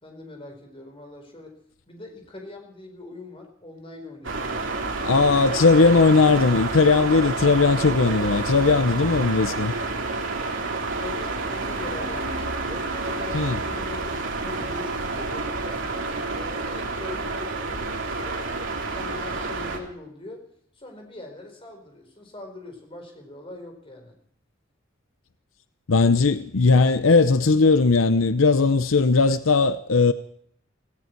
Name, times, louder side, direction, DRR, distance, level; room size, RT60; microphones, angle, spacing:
voice 1, 0.0-1.6 1.9-5.1 10.9-15.8 16.3-24.2, left 2 dB, 25° left, 4.4 m, -42 dB
sound 1, 4.2-19.8, right 3 dB, 70° right, 3.0 m, -29 dB
voice 2, 5.0-9.7 13.3-13.6 25.9-30.1, left 4 dB, 85° left, 0.7 m, -18 dB
Mallet percussion, 12.9-15.9, left 1 dB, 25° right, 3.7 m, -48 dB
17.5 x 17.0 x 4.6 m
head